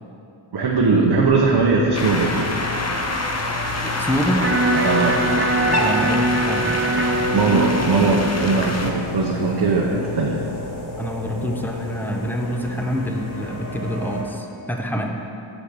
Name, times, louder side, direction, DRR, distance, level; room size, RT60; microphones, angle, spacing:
voice 1, 0.5-2.5 4.8-5.2 7.3-10.6, right 3 dB, 60° right, -1 dB, 0.8 m, -20 dB
sound 1, 0.6-14.2, left 3 dB, 75° left, 1.4 m, -34 dB
voice 2, 1.1-1.5 3.8-4.5 5.7-6.8 11.0-15.1, equal, 5° left, 2 dB, 0.8 m, -26 dB
sound 2, 1.9-8.9, left 2 dB, 35° left, 0.8 m, -26 dB
Electric guitar, 4.4-10.5, right 2 dB, 25° right, 0.5 m, -24 dB
6.5 x 6.3 x 6.6 m, 2.8 s
wide cardioid pair, 80°, 47 cm